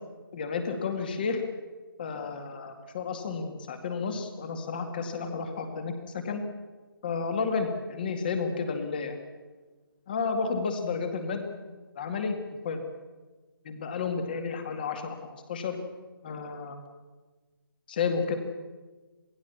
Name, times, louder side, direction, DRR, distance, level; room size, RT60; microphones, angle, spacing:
voice 1, 0.3-1.4 2.0-6.4 7.0-9.2 10.1-11.5 12.0-12.4 12.6-12.8 13.6-15.2 15.5-15.8 16.2-16.8 17.9-18.3, left 5 dB, 25° left, 6 dB, 2.2 m, -31 dB
27.5 x 18.5 x 7.1 m, 1.3 s
hypercardioid pair, 175°, 12 cm